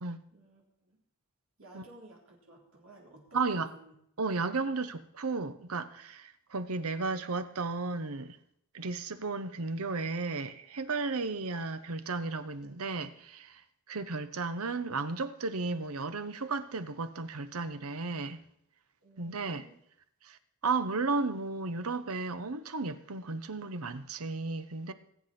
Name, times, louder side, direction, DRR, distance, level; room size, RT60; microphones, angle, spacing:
voice 1, 0.3-1.0 1.6-3.9 19.0-19.8, right 1 dB, 70° right, 3.6 m, -55 dB
voice 2, 3.3-3.7 4.2-8.4 8.7-13.6 13.9-18.4 19.2-19.7 20.2-20.4 20.6-24.9, right 3 dB, 90° right, 0.9 m, -34 dB
20.0 x 8.2 x 4.3 m
head